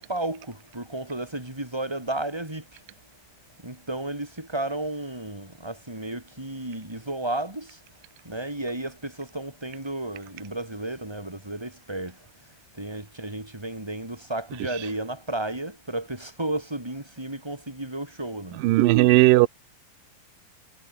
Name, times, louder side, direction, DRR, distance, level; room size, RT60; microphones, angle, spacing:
voice 1, 0.0-2.8 3.6-7.8 8.2-18.7, right 2 dB, 5° right, 5.5 m, -33 dB
voice 2, 18.6-19.5, right 18 dB, 75° right, 2.4 m, -16 dB
omnidirectional pair, 4.2 m